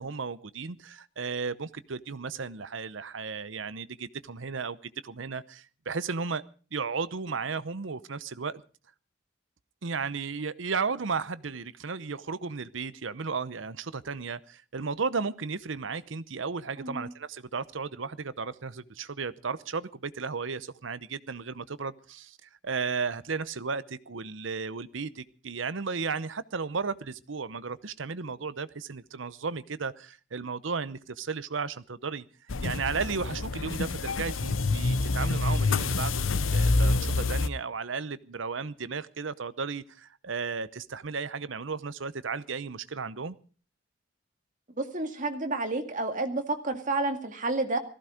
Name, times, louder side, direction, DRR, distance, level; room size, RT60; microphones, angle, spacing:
voice 1, 0.0-6.4 6.7-8.6 9.8-32.2 32.6-36.2 36.5-43.4, right 5 dB, 75° right, 16 dB, 0.8 m, -34 dB
voice 2, 16.8-17.1 44.8-47.8, right 2 dB, 40° right, 5 dB, 2.1 m, -30 dB
sound 1, 32.5-37.5, left 3 dB, 90° left, 0.8 m, -27 dB
18.0 x 15.0 x 5.1 m, 0.39 s
head